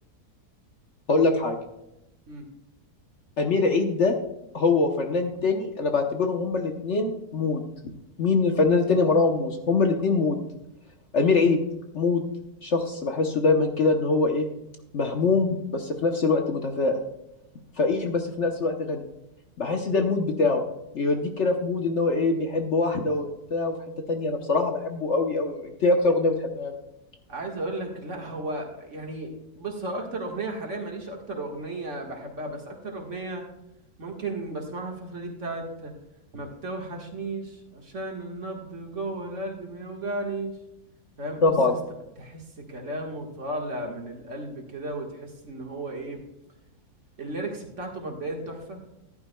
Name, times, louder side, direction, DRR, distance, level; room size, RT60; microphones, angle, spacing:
voice 1, 1.1-1.5 3.4-4.2 4.5-7.6 8.2-10.4 11.1-11.6 11.9-12.2 12.6-14.5 14.9-17.0 17.8-19.0 19.6-20.6 20.9-23.7 24.1-26.8 41.4-41.7, left 3 dB, 50° left, 4 dB, 1.1 m, -23 dB
voice 2, 27.3-33.5 34.0-35.9 36.3-40.6 41.2-41.8 42.2-46.2 47.2-48.8, right 2 dB, 50° right, 1 dB, 1.9 m, -34 dB
14.0 x 11.0 x 2.2 m, 0.90 s
omnidirectional pair, 1.7 m